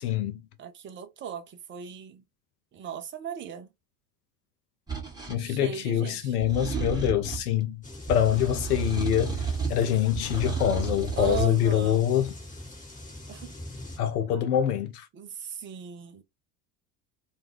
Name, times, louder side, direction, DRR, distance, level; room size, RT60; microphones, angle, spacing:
voice 1, 0.0-0.4 5.3-7.8 8.1-12.3 14.0-15.1, left 10 dB, 65° left, 0.6 m, -25 dB
voice 2, 0.6-2.2 2.7-3.7 5.4-6.4 11.1-12.0 13.3-13.5 15.1-16.2, right 8 dB, 25° right, 0.5 m, -37 dB
sound 1, 4.9-5.4 6.4-7.5 8.1-9.8 10.2-11.5, right 5 dB, 10° right, 1.0 m, -32 dB
sound 2, 7.8-14.0, left 1 dB, 15° left, 1.2 m, -43 dB
2.2 x 2.2 x 3.0 m
figure-of-eight pair, 70°, 50 cm